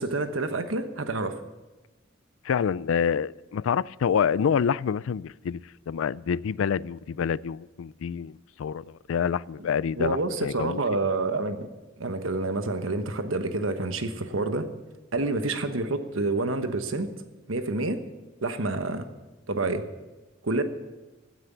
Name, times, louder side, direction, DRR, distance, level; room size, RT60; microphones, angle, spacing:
voice 1, 0.0-1.4 10.0-11.7 12.0-14.7 15.1-17.1 17.5-18.0 18.4-19.0 19.5-19.8 20.4-20.6, right 2 dB, 85° right, 1.2 m, -28 dB
voice 2, 2.5-5.6 5.9-10.8, left 7 dB, 85° left, 0.4 m, -27 dB
16.0 x 9.3 x 6.9 m
head